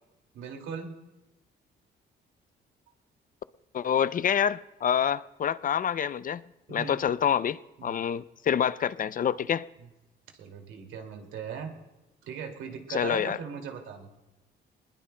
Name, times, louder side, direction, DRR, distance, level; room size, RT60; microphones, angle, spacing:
voice 1, 0.3-1.0 6.7-7.0 7.8-8.0 9.8-9.9 10.3-11.7 12.2-14.1, right 6 dB, 85° right, 2.3 m, -39 dB
voice 2, 3.7-6.4 6.7-9.7 12.9-13.4, left 8 dB, 45° left, 0.5 m, -27 dB
20.5 x 20.5 x 2.2 m
cardioid pair, 90°, 20 cm